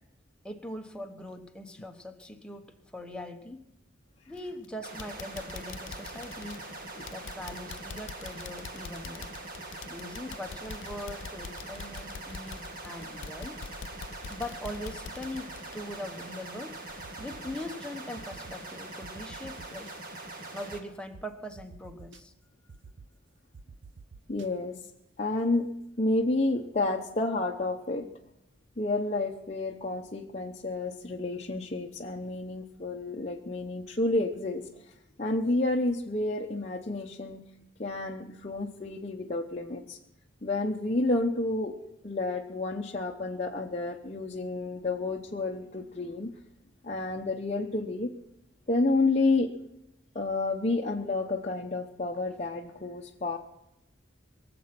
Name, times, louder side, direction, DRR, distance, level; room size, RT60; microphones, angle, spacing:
voice 1, 0.4-3.6 4.3-6.7 7.1-9.3 9.9-13.6 14.3-16.8 17.2-19.9 20.5-22.3, left 1 dB, 5° left, 3 dB, 1.1 m, -41 dB
sound 1, 4.3-4.6 5.0-16.6 16.9-17.0 17.5-17.6, left 5 dB, 75° left, 0.5 m, -45 dB
sound 2, 4.8-20.8, right 2 dB, 50° right, 2.1 m, -43 dB
sound 3, 17.0-17.7 18.2-18.5 19.0-19.9 20.7-20.8 21.1-21.2 21.6-22.2 22.7-23.1 23.5-24.5, right 4 dB, 70° right, 0.6 m, -49 dB
voice 2, 24.3-24.8 25.2-25.7 26.0-28.1 28.8-34.6 35.2-37.4 37.8-40.0 40.4-41.7 42.0-46.3 46.8-48.1 48.7-49.5 50.1-53.4, left 2 dB, 35° left, -1 dB, 0.8 m, -30 dB
22.5 x 7.7 x 6.0 m, 0.88 s
head